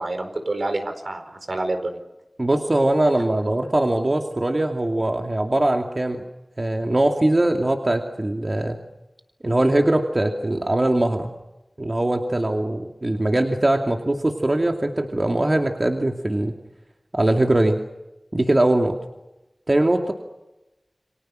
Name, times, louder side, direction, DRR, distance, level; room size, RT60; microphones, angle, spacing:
voice 1, 0.0-2.0, right 2 dB, 80° right, 6 dB, 4.5 m, -28 dB
voice 2, 2.4-6.2 6.6-8.8 9.4-11.3 11.8-16.5 17.1-17.8 18.3-19.0 19.7-20.1, right 1 dB, 50° right, 3 dB, 2.6 m, -21 dB
29.5 x 25.0 x 6.4 m, 0.98 s
wide cardioid pair, 40°, 0 cm